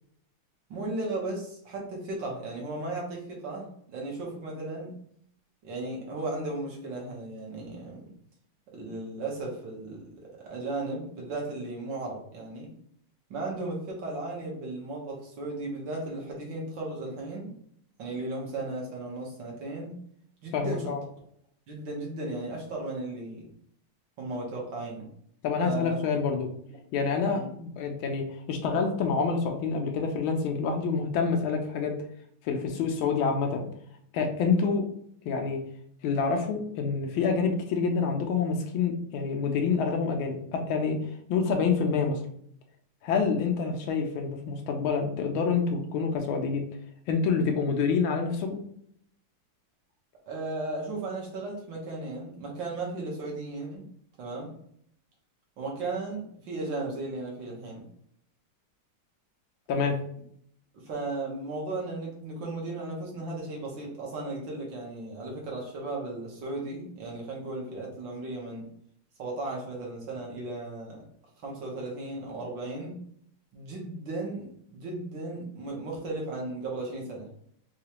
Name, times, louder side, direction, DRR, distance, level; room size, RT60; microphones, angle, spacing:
voice 1, 0.7-4.9 5.6-8.1 8.7-10.0 10.4-12.7 13.3-17.5 18.0-19.9 20.4-20.9 21.7-23.4 24.2-25.1 25.6-26.0 27.3-27.5 50.3-53.9 54.2-54.5 55.6-57.8 60.8-68.7 69.2-71.0 71.4-72.9 73.5-77.3, right 2 dB, 65° right, -2 dB, 1.6 m, -35 dB
voice 2, 20.5-21.0 25.4-26.5 26.9-32.0 32.4-33.6 34.1-34.8 35.3-35.7 36.0-41.0 41.3-42.2 43.0-46.6 47.1-48.6 59.7-60.0, left 5 dB, 75° left, 4 dB, 1.3 m, -27 dB
4.8 x 2.3 x 2.9 m, 0.67 s
omnidirectional pair, 2.4 m